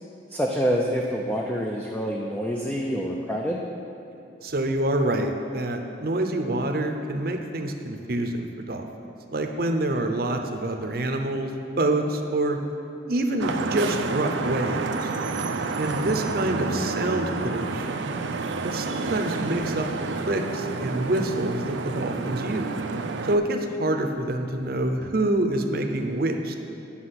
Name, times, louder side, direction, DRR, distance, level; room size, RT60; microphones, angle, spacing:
voice 1, 0.3-3.6, equal, 10° left, -1 dB, 0.5 m, -26 dB
voice 2, 4.4-8.9 9.3-11.5 11.8-12.6 13.1-15.1 15.8-18.1 18.6-19.9 20.3-22.7 23.2-26.6, right 1 dB, 55° right, 4 dB, 0.7 m, -26 dB
Vehicle horn car horn honking / Traffic noise roadway noise, 13.4-23.4, right 4 dB, 90° right, 0.5 m, -30 dB
9.7 x 6.0 x 5.9 m, 2.8 s
head